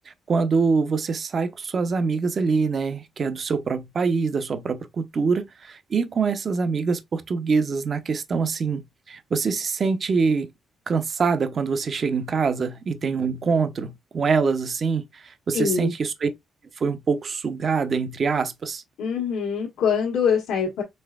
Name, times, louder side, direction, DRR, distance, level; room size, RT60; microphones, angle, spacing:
voice 1, 0.1-10.5 10.9-16.3 16.8-18.8, right 5 dB, 45° right, 0.7 m, -24 dB
voice 2, 15.5-15.9 19.0-20.8, left 6 dB, 85° left, 1.2 m, -24 dB
5.4 x 3.2 x 2.3 m
cardioid pair, 90°, 0 cm